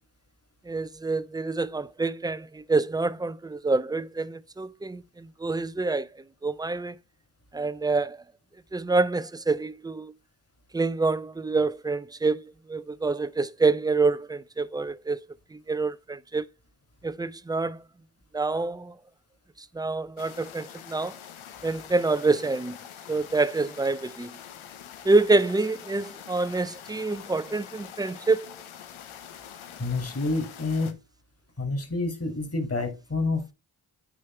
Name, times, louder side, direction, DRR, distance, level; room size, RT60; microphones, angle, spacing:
voice 1, 0.7-6.1 6.4-7.0 7.5-8.2 8.7-10.1 10.7-12.4 12.7-15.2 15.7-16.4 17.0-17.8 18.3-18.9 19.8-21.1 21.6-22.8 23.1-24.4 25.0-28.5, right 3 dB, 10° right, 0.4 m, -26 dB
sound 1, 20.2-30.9, left 9 dB, 85° left, 0.9 m, -45 dB
voice 2, 29.8-31.0 31.6-33.5, left 3 dB, 30° left, 2.4 m, -28 dB
8.7 x 3.4 x 4.4 m
supercardioid pair, 45°, 48 cm